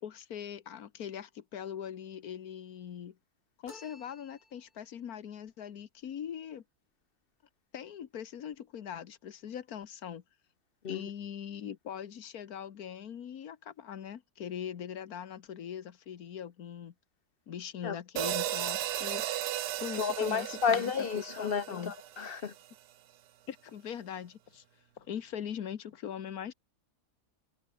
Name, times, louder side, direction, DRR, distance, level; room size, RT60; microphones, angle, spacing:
voice 1, 0.0-3.2 3.6-6.6 7.7-10.2 10.9-16.9 17.5-19.2 19.8-21.9 23.5-24.6 25.0-26.5, left 9 dB, 70° left, 1.6 m, -41 dB
sound 1, 3.7-4.9, left 2 dB, 30° left, 2.7 m, -54 dB
sound 2, 18.2-22.5, right 12 dB, 85° right, 1.3 m, -35 dB
voice 2, 20.0-22.5, left 6 dB, 45° left, 0.9 m, -31 dB
omnidirectional pair, 1.6 m